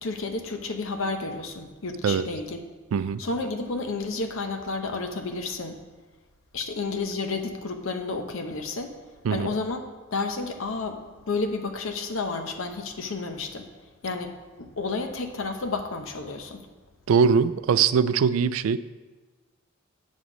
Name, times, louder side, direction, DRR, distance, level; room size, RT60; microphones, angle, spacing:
voice 1, 0.0-2.6 3.2-5.8 6.5-8.9 9.3-9.8 10.1-13.7 14.0-16.7, left 3 dB, 75° left, 5 dB, 0.8 m, -31 dB
voice 2, 2.9-3.2 9.2-9.5 17.1-18.8, right 6 dB, 80° right, 15 dB, 0.3 m, -21 dB
8.0 x 4.2 x 6.1 m, 1.3 s
head